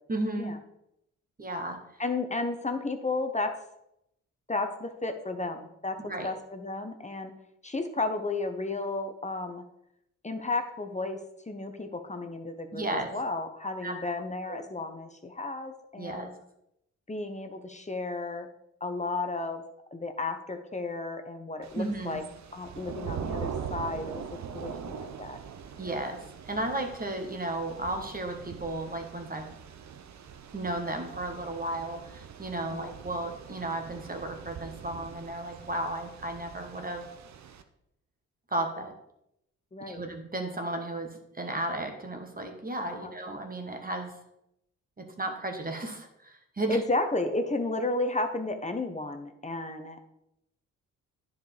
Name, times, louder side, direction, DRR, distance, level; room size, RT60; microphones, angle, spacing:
voice 1, 0.1-0.6 1.4-1.8 6.0-6.3 12.7-13.1 13.8-14.0 14.5-14.7 16.0-16.3 21.7-22.2 25.8-29.5 30.5-37.0 38.5-38.9 39.9-44.2 45.0-46.8, right 1 dB, 25° right, 4 dB, 1.3 m, -34 dB
voice 2, 2.0-3.5 4.5-7.3 7.6-9.6 10.2-11.2 11.5-12.8 13.1-16.3 17.1-18.5 18.8-19.6 19.9-22.2 22.5-24.2 24.5-25.4 32.7-32.9 39.7-40.0 42.9-43.1 46.7-50.0, left 2 dB, 20° left, 6 dB, 0.9 m, -33 dB
Thunder / Rain, 21.6-37.6, right 7 dB, 50° right, 0.8 m, -42 dB
10.5 x 4.8 x 3.4 m, 0.81 s
hypercardioid pair, 45°, 35 cm